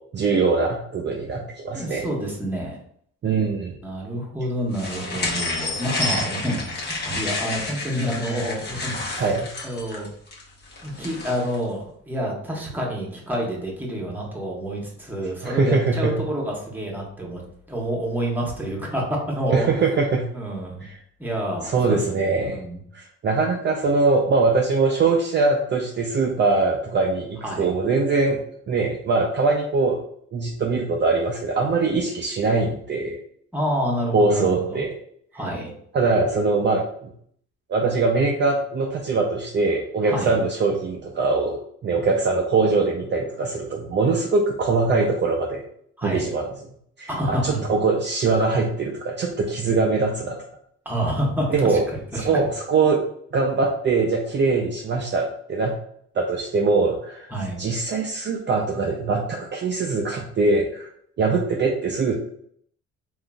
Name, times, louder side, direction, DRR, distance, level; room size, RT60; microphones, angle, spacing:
voice 1, 0.1-2.1 3.2-3.8 9.2-9.5 15.4-16.1 19.5-20.2 20.8-21.0 21.6-22.6 22.9-30.0 30.3-33.2 34.1-34.9 35.9-36.8 37.7-45.6 46.0-46.5 47.0-50.4 51.5-51.8 52.2-53.0 53.3-55.7 56.2-57.3 57.6-60.9 61.2-62.1, right 3 dB, 40° right, 0 dB, 0.5 m, -22 dB
voice 2, 1.7-2.8 3.8-9.3 9.6-10.1 10.8-19.7 20.3-20.8 21.2-22.8 27.4-27.7 33.5-34.8 35.3-35.7 40.0-40.4 46.0-46.3 47.1-47.6 50.8-52.4 57.3-57.6, equal, 5° right, -2 dB, 1.0 m, -28 dB
sound 1, 4.7-11.6, left 2 dB, 35° left, 1.0 m, -30 dB
3.6 x 2.5 x 2.3 m, 0.65 s
cardioid pair, 90°, 30 cm